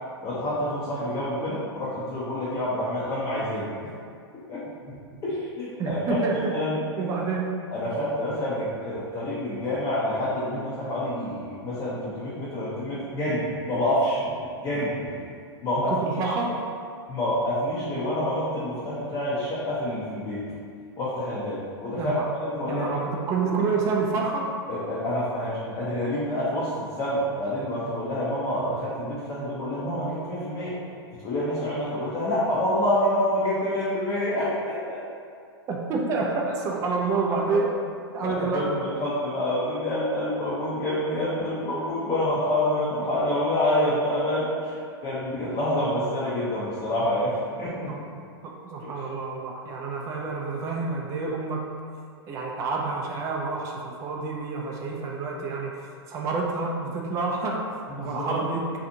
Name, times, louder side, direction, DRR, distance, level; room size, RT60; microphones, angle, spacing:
voice 1, 0.2-3.7 4.5-4.9 5.2-6.0 6.3-6.8 7.7-14.3 14.6-15.0 15.6-15.9 17.1-20.4 21.0-22.1 22.4-22.9 24.7-30.8 31.2-35.0 37.5-37.6 38.2-47.8 48.8-48.9 57.9-58.4, left 1 dB, 25° left, -9 dB, 0.6 m, -27 dB
voice 2, 5.8-6.5 7.0-7.5 15.9-16.6 22.0-22.3 22.7-24.5 35.7-37.8 38.1-38.8 47.9-48.0 48.4-51.7 52.3-55.7 56.1-57.6 58.0-58.7, right 4 dB, 25° right, -1 dB, 0.3 m, -28 dB
2.7 x 2.5 x 2.6 m, 2.3 s
figure-of-eight pair, 100°, 14 cm